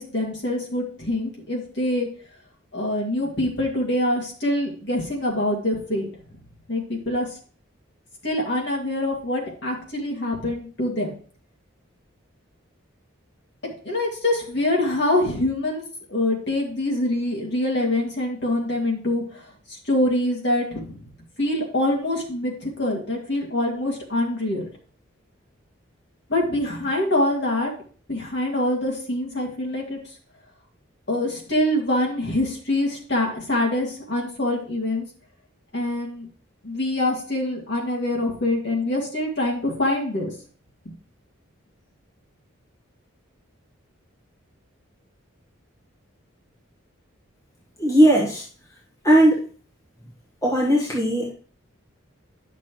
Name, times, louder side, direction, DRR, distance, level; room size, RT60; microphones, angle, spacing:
voice 1, 0.0-2.1 2.7-6.1 6.7-7.3 8.2-11.1 13.6-15.8 16.1-19.4 19.7-21.0 21.4-24.7 26.3-27.7 28.1-30.0 31.1-35.1 35.7-36.3 36.6-40.3, left 1 dB, 55° left, -1 dB, 2.2 m, -25 dB
voice 2, 47.8-48.5 49.0-49.5 50.4-51.3, right 1 dB, 15° left, -4 dB, 1.4 m, -18 dB
10.5 x 6.1 x 3.1 m, 0.43 s
head